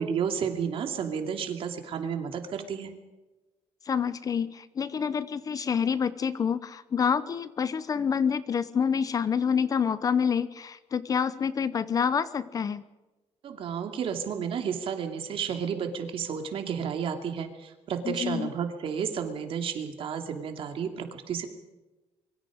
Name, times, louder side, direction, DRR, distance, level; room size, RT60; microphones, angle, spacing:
voice 1, 0.0-2.9 13.4-21.5, right 7 dB, 55° right, 6 dB, 2.7 m, -32 dB
voice 2, 3.9-12.8 18.0-18.5, left 7 dB, 30° left, 15 dB, 0.8 m, -27 dB
24.5 x 23.5 x 5.2 m, 1.1 s
cardioid pair, 165°, 11 cm